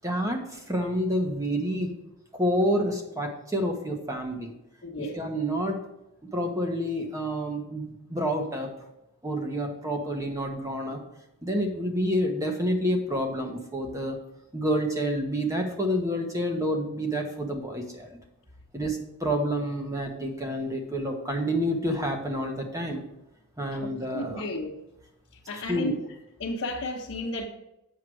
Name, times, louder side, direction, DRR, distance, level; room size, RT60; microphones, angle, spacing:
voice 1, 0.0-1.9 2.3-4.5 5.0-5.9 6.3-8.7 9.2-11.0 11.4-14.2 14.5-18.1 18.7-23.0 23.6-24.5 25.7-26.0, equal, 15° right, 1.2 m, -28 dB
voice 2, 4.8-5.2 23.7-24.7 25.5-25.9 26.4-27.5, left 2 dB, 60° left, 1.2 m, -33 dB
8.1 x 6.6 x 4.8 m
head